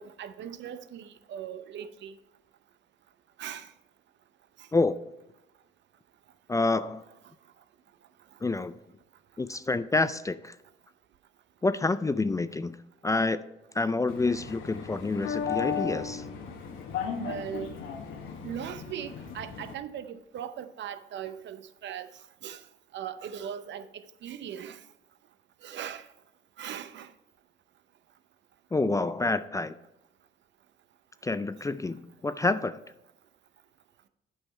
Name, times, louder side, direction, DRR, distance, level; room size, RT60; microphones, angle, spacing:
voice 1, 0.0-2.2 3.4-3.7 4.6-4.7 17.2-17.8 18.4-22.1 22.4-22.6 22.9-24.8 25.6-26.1 26.6-27.1, right 9 dB, 65° right, 0.6 m, -39 dB
voice 2, 6.5-7.0 8.4-8.7 9.4-10.5 11.6-12.8 13.0-13.4 13.7-16.2 28.7-29.7 31.2-32.8, left 3 dB, 15° left, 0.3 m, -28 dB
sound 1, 14.1-19.7, left 7 dB, 85° left, 1.1 m, -35 dB
8.7 x 5.5 x 4.2 m
cardioid pair, 90°, 20 cm